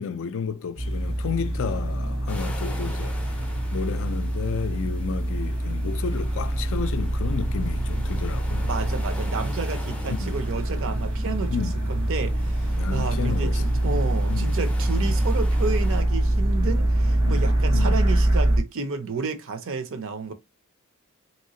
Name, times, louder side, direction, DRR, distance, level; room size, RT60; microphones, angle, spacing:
voice 1, 0.0-3.2 3.7-8.7 10.1-10.3 11.5-11.8 12.8-14.0 14.3-14.5 15.0-15.1 17.2-17.5 17.7-17.9, left 6 dB, 60° left, 0.4 m, -32 dB
sound 1, 0.8-18.6, right 1 dB, 80° right, 1.1 m, -24 dB
sound 2, 2.3-16.0, left 2 dB, 5° left, 0.5 m, -45 dB
voice 2, 8.6-11.6 11.9-20.3, right 4 dB, 60° right, 0.6 m, -31 dB
3.2 x 2.9 x 2.8 m
head